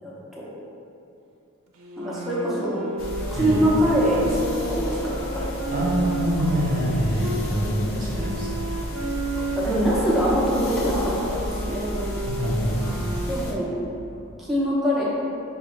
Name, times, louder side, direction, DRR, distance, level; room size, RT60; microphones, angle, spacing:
voice 1, 0.0-0.5 2.0-2.8 3.3-5.5 8.0-8.3 9.6-11.9 13.3-13.7 14.4-15.0, equal, ahead, -8 dB, 0.6 m, -24 dB
sound 1, 1.8-7.5 8.1-13.5, right 2 dB, 70° right, 0.5 m, -32 dB
sound 2, 3.0-13.5, left 1 dB, 60° left, 0.5 m, -32 dB
voice 2, 5.7-8.5 12.3-12.9, equal, 40° right, -5 dB, 0.8 m, -25 dB
5.7 x 2.1 x 3.1 m, 2.8 s
head